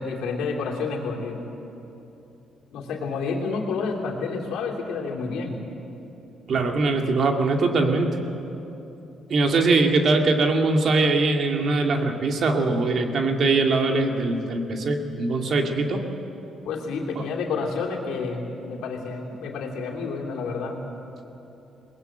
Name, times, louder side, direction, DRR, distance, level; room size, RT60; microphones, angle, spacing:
voice 1, 0.0-1.4 2.7-5.6 16.6-20.8, left 4 dB, 85° left, -1 dB, 3.1 m, -29 dB
voice 2, 6.5-8.2 9.3-16.0 17.2-17.3, right 3 dB, 60° right, 3 dB, 2.3 m, -22 dB
21.5 x 19.0 x 7.9 m, 3.0 s
cardioid pair, 90°, 0 cm